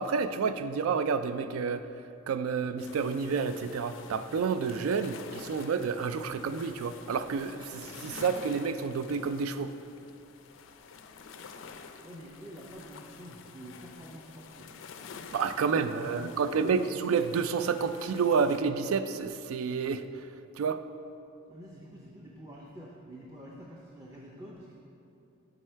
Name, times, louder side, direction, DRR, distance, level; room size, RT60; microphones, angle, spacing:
voice 1, 0.0-1.9 2.3-9.8 15.3-20.0 20.6-20.8, right 5 dB, 85° right, 11 dB, 0.3 m, -29 dB
sound 1, 2.8-18.6, left 5 dB, 65° left, 0.4 m, -49 dB
voice 2, 12.0-14.7 15.6-16.9 21.5-24.7, equal, 15° right, -3 dB, 0.5 m, -47 dB
7.7 x 4.7 x 4.5 m, 2.7 s
head